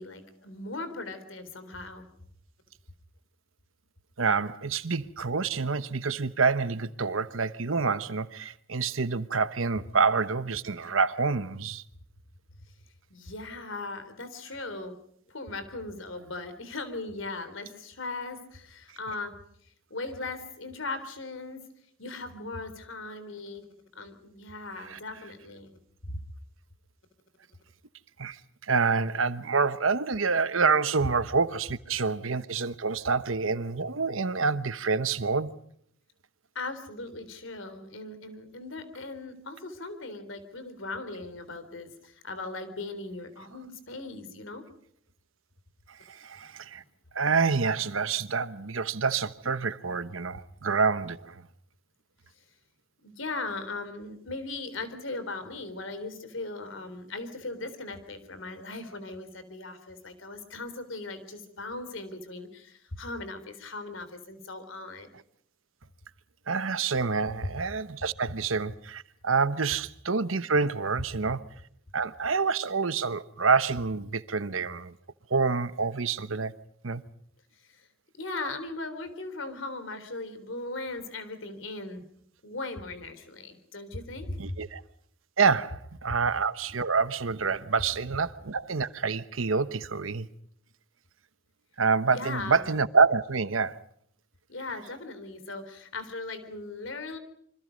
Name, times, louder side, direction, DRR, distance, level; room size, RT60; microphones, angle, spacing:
voice 1, 0.0-2.1 13.1-14.9 15.3-19.3 19.9-21.6 22.0-23.6 23.9-25.7 26.0-26.2 36.5-44.7 53.0-65.1 77.6-77.9 78.1-82.0 82.4-84.6 92.1-92.7 94.5-97.2, left 2 dB, 70° left, 3.8 m, -38 dB
voice 2, 4.2-11.8 24.9-25.0 28.2-28.4 28.7-35.5 46.1-46.8 47.1-51.4 66.5-71.4 71.9-74.9 75.3-76.5 76.8-77.0 84.4-84.8 85.4-90.3 91.8-93.8, right 4 dB, 85° right, 1.1 m, -27 dB
27.5 x 25.0 x 5.3 m
head